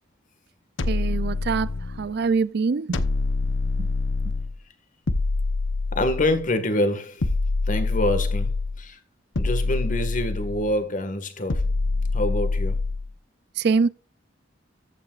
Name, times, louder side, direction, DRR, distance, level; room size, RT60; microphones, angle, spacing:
sound 1, 0.8-2.1 2.9-4.6 5.1-6.5 7.2-8.8 9.4-10.8 11.5-13.1, left 3 dB, 70° left, 0.9 m, -25 dB
voice 1, 0.9-1.7 2.0-3.0 3.8-3.9 13.6-13.9, right 5 dB, 55° right, 0.4 m, -24 dB
voice 2, 5.9-7.3 7.7-8.5 8.8-9.0 9.4-11.6 12.1-12.8, left 1 dB, 40° left, 1.7 m, -26 dB
14.5 x 8.7 x 2.5 m
head